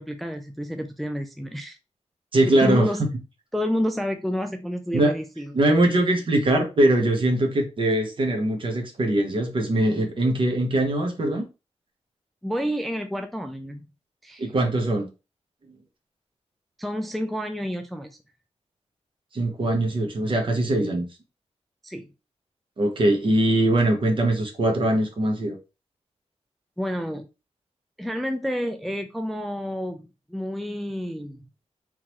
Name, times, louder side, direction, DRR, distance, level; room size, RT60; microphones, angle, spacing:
voice 1, 0.0-1.8 2.5-3.0 3.5-5.5 12.4-13.9 14.2-14.5 16.8-18.2 21.8-22.1 26.8-27.3 28.0-31.4, equal, ahead, 0.4 m, -29 dB
voice 2, 2.3-2.8 4.9-5.1 5.5-11.5 14.4-15.1 19.3-21.1 22.8-25.6, right 1 dB, 45° right, 1.1 m, -22 dB
3.7 x 3.0 x 3.0 m
wide cardioid pair, 125°, 12 cm